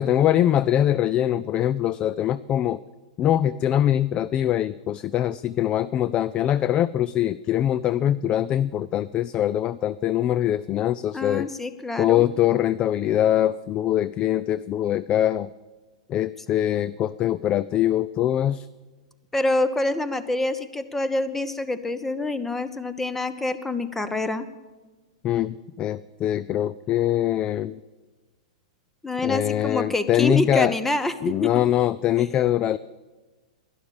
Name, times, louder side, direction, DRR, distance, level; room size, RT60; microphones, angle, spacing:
voice 1, 0.0-2.8 3.2-11.5 12.0-15.5 16.1-18.7 25.2-27.8 29.2-30.7 31.2-32.8, left 11 dB, 30° left, 17 dB, 0.3 m, -23 dB
voice 2, 11.1-12.3 19.3-24.5 29.0-31.1 31.4-31.6, left 2 dB, 10° left, 13 dB, 0.9 m, -26 dB
11.5 x 11.5 x 6.9 m, 1.3 s
figure-of-eight pair, 105°, 3 cm